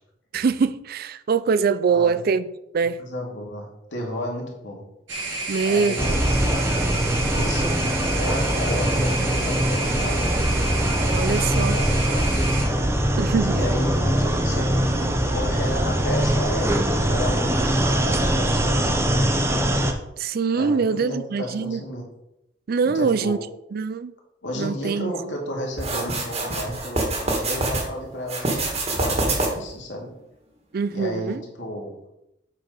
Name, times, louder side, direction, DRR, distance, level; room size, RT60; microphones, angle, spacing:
voice 1, 0.3-3.0 5.5-6.1 11.1-11.8 13.2-13.6 20.2-21.8 22.7-23.4 23.7-24.1 24.6-25.1 30.7-31.4, right 5 dB, 55° right, 0.4 m, -23 dB
voice 2, 1.9-2.2 3.0-4.8 5.6-6.3 7.2-7.8 8.1-10.3 11.2-12.3 13.4-19.2 20.5-22.0 22.8-23.4 24.4-30.1 30.9-31.9, left 1 dB, 90° left, 2.3 m, -32 dB
sound 1, 5.1-12.6, right 2 dB, 85° right, 1.8 m, -30 dB
sound 2, 6.0-19.9, right 1 dB, 15° right, 0.8 m, -22 dB
sound 3, 25.8-27.9 28.3-29.7, right 2 dB, 35° right, 1.7 m, -25 dB
7.8 x 4.6 x 5.3 m
head